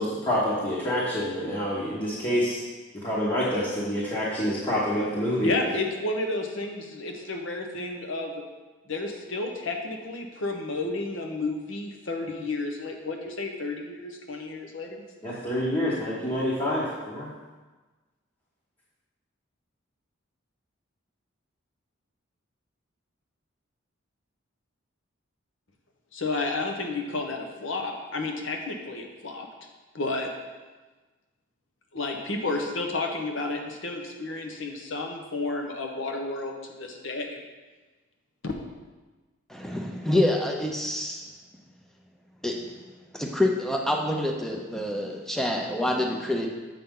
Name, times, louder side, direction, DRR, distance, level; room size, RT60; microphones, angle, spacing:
voice 1, 0.0-2.6 2.9-5.5 15.2-17.3, equal, 25° left, -8 dB, 1.2 m, -27 dB
voice 2, 5.4-8.4 8.9-15.0 26.1-29.5 29.9-30.3 31.9-37.4 38.4-38.5, left 2 dB, 70° left, 2 dB, 0.9 m, -31 dB
voice 3, 39.5-41.3 42.4-42.5 43.1-46.5, left 1 dB, ahead, 1 dB, 0.6 m, -27 dB
7.5 x 5.7 x 3.7 m, 1.3 s
head